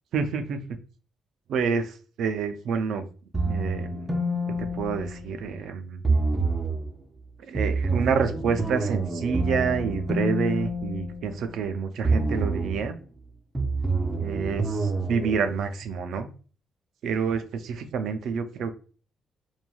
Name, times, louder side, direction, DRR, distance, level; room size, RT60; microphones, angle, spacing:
voice 1, 0.1-0.6 1.5-3.1 3.4-4.1 4.5-6.0 7.4-12.9 14.2-16.3 17.0-18.7, right 6 dB, 75° right, 8 dB, 0.4 m, -28 dB
sound 1, 3.3-5.6 6.0-6.9 7.6-11.7 12.0-12.9 13.6-15.3, right 2 dB, 15° right, 0.4 m, -27 dB
3.1 x 2.2 x 2.3 m, 0.38 s
cardioid pair, 90°, 0 cm